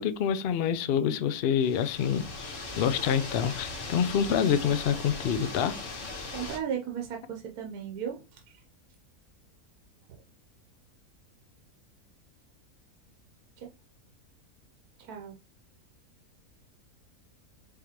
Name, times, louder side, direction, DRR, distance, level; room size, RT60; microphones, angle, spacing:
voice 1, 0.0-5.9, left 8 dB, 80° left, 0.5 m, -27 dB
sound 1, 1.6-6.6, left 3 dB, 55° left, 1.4 m, -39 dB
voice 2, 6.3-8.2 15.0-15.3, right 8 dB, 85° right, 1.2 m, -35 dB
4.8 x 3.5 x 2.9 m
omnidirectional pair, 1.6 m